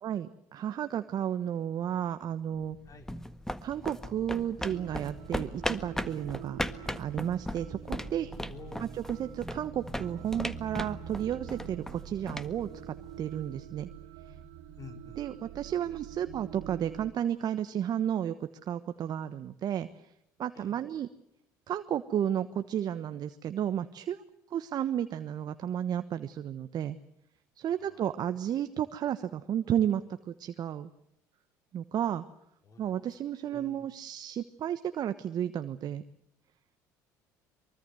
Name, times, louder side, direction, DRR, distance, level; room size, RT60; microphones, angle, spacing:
voice 1, 0.0-2.8 3.6-6.6 7.0-8.3 8.8-13.9 14.3-14.4 15.2-20.1 20.4-21.1 21.7-24.2 24.5-27.0 27.6-30.9 31.7-32.2 32.8-36.0, right 10 dB, 50° right, 10 dB, 1.2 m, -33 dB
sound 1, 2.6-13.4, left 1 dB, 5° left, 1.6 m, -38 dB
sound 2, 4.6-17.1, right 10 dB, 75° right, 3.0 m, -46 dB
voice 2, 8.5-8.9 14.8-15.2 20.5-20.8 27.8-28.1 32.6-32.9 33.5-33.9, left 4 dB, 40° left, 6 dB, 3.9 m, -49 dB
24.0 x 24.0 x 7.9 m, 0.77 s
hypercardioid pair, 70°, 9 cm